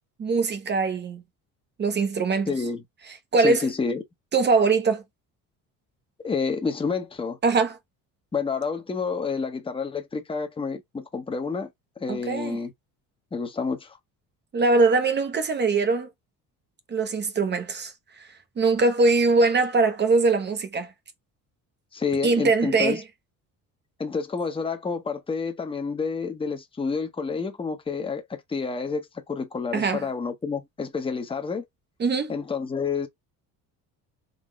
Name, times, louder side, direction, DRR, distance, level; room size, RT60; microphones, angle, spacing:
voice 1, 0.2-1.2 1.8-2.5 3.3-3.7 4.3-5.0 7.4-7.8 12.1-12.6 14.5-16.1 16.9-17.9 18.6-20.9 22.2-23.0 29.7-30.0 32.0-32.3, right 3 dB, 30° right, 0.7 m, -22 dB
voice 2, 2.5-2.8 3.4-4.0 6.2-7.4 8.3-11.7 12.0-12.7 13.3-14.0 21.9-23.0 24.0-31.7 32.3-33.1, left 5 dB, 15° left, 0.8 m, -29 dB
3.9 x 3.0 x 3.0 m
cardioid pair, 120°, 34 cm